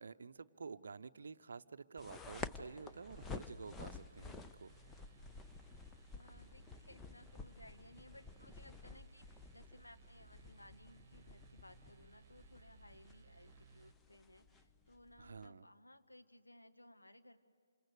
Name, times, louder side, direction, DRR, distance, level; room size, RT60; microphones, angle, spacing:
voice 1, 0.0-4.7 15.2-15.7, right 5 dB, 60° right, 13 dB, 0.7 m, -50 dB
sound 1, 2.0-15.5, left 4 dB, 10° left, 0.6 m, -52 dB
sound 2, 2.6-13.9, right 5 dB, 45° right, 1.1 m, -63 dB
voice 2, 6.1-17.4, left 1 dB, 80° left, 7 dB, 1.5 m, -61 dB
28.0 x 26.0 x 6.6 m, 2.3 s
figure-of-eight pair, 140°, 0 cm